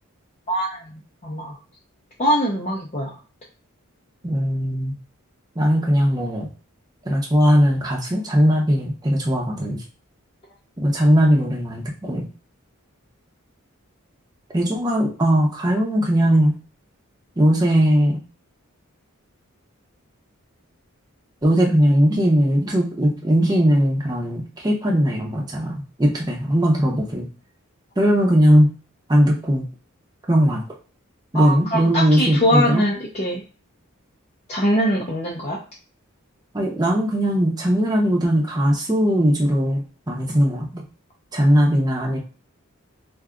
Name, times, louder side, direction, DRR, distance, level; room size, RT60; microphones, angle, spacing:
voice 1, 0.5-0.9 1.2-1.5 2.2-3.1 31.3-33.4 34.5-35.6, equal, 30° left, -4 dB, 0.5 m, -22 dB
voice 2, 4.2-4.9 5.6-6.5 7.1-9.8 10.8-12.2 14.5-16.5 17.4-18.2 21.4-27.3 28.0-28.7 29.1-29.6 30.3-30.6 31.3-32.8 36.5-40.8 41.3-42.2, equal, 20° right, -1 dB, 0.6 m, -19 dB
2.6 x 2.3 x 3.6 m, 0.36 s
head